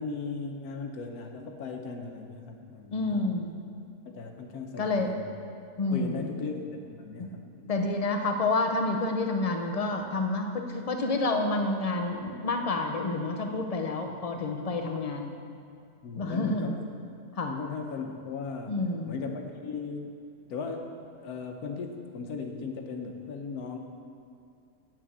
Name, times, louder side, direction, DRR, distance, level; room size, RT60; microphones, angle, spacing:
voice 1, 0.0-3.4 4.1-5.3 5.9-7.9 14.0-14.1 16.0-16.8 17.4-20.2 20.5-20.9 21.2-23.8, left 4 dB, 75° left, 4 dB, 1.4 m, -38 dB
voice 2, 2.9-3.5 4.8-5.1 5.8-6.3 7.2-7.4 7.7-15.3 16.1-16.7 17.4-17.6 18.7-19.2, left 2 dB, 45° left, 4 dB, 0.5 m, -29 dB
8.4 x 6.1 x 8.2 m, 2.4 s
omnidirectional pair, 1.6 m